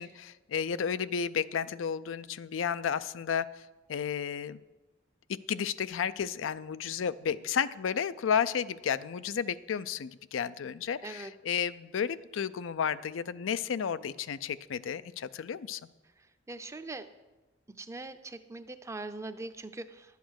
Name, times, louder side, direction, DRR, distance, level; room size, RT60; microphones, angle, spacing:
voice 1, 0.0-3.5 3.9-4.6 5.3-15.8, left 7 dB, 90° left, 15 dB, 0.4 m, -32 dB
voice 2, 16.5-17.1 17.8-20.2, right 2 dB, 15° right, 10 dB, 0.5 m, -41 dB
11.5 x 8.2 x 6.3 m, 1.1 s
head